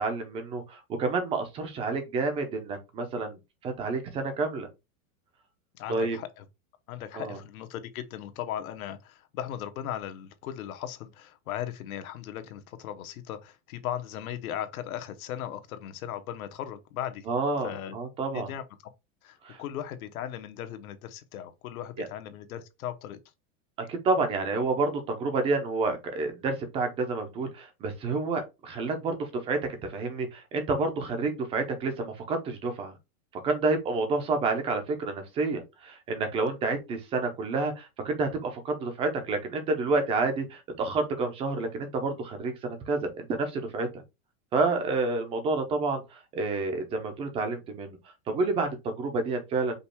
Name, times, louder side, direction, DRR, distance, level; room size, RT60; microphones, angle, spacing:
voice 1, 0.0-4.7 5.9-6.2 7.1-7.4 17.3-18.5 19.4-19.6 22.0-22.1 23.8-29.6 29.9-32.9 33.4-43.9 44.5-48.0 48.3-49.8, right 3 dB, 15° right, 0.4 m, -29 dB
voice 2, 5.8-6.4 6.9-17.3 17.6-17.9 18.3-18.6 19.2-23.2, left 10 dB, 80° left, 1.1 m, -37 dB
5.2 x 2.3 x 4.3 m
supercardioid pair, 165°, 42 cm